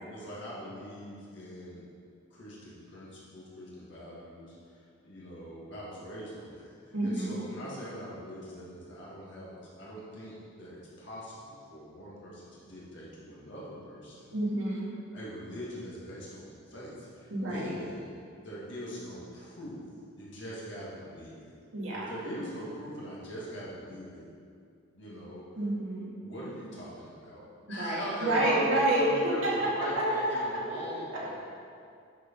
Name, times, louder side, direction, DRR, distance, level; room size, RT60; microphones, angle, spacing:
voice 1, 0.0-1.8 2.3-14.3 15.1-18.1 18.4-19.8 20.2-21.5 21.9-24.3 24.9-25.4 26.2-27.4 27.7-31.3, equal, 55° left, -7 dB, 1.8 m, -42 dB
voice 2, 6.9-7.4 14.3-14.9 17.3-17.8 21.7-22.1 25.6-26.1 27.8-30.6 31.1-31.2, right 1 dB, 65° right, -6 dB, 2.1 m, -29 dB
10.0 x 4.8 x 5.3 m, 2.3 s
head